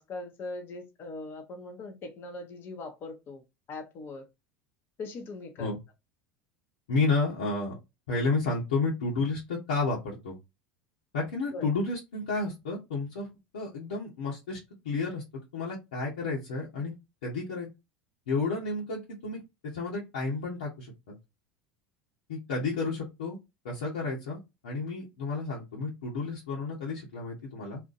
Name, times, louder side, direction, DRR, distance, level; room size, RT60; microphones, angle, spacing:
voice 1, 0.0-3.4 3.7-4.2 5.0-5.7 11.5-11.7, left 3 dB, 45° left, 0.8 m, -40 dB
voice 2, 6.9-7.7 8.1-10.4 11.1-13.3 13.5-14.6 14.8-15.2 15.5-16.9 17.2-17.7 18.3-19.4 19.7-21.2 22.3-23.4 23.6-27.8, left 3 dB, 85° left, 1.0 m, -31 dB
2.6 x 2.1 x 3.8 m
hypercardioid pair, 90°, 5 cm